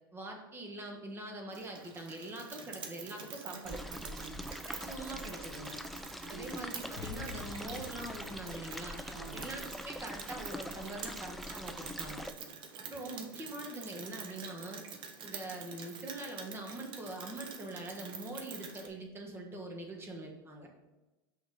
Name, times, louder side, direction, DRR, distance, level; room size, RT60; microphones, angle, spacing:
voice 1, 0.1-3.8 4.7-5.8 6.3-9.0 9.3-12.3 12.8-14.8 15.2-20.7, right 1 dB, 20° right, 1 dB, 1.4 m, -43 dB
Rain, 1.5-18.9, right 6 dB, 45° right, 1.0 m, -47 dB
voice 2, 3.4-4.5 6.2-6.5 9.1-9.5, right 4 dB, 90° right, 2 dB, 1.1 m, -48 dB
sound 1, 3.6-12.3, equal, ahead, 0.3 m, -44 dB
sound 2, 7.0-10.1 10.4-10.7, left 9 dB, 80° left, 0.5 m, -49 dB
5.9 x 4.1 x 5.5 m, 1.1 s
supercardioid pair, 105°, 11 cm